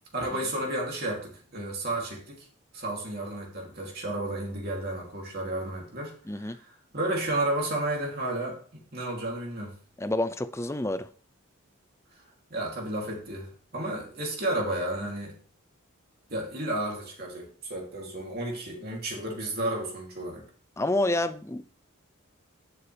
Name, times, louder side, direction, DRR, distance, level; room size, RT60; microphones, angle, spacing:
voice 1, 0.1-2.3 2.7-9.7 12.5-15.3 16.3-20.4, right 1 dB, 45° right, 3.0 m, -32 dB
voice 2, 6.3-6.6 10.0-11.1 20.8-21.6, left 1 dB, 15° left, 0.5 m, -28 dB
11.0 x 7.0 x 3.4 m
head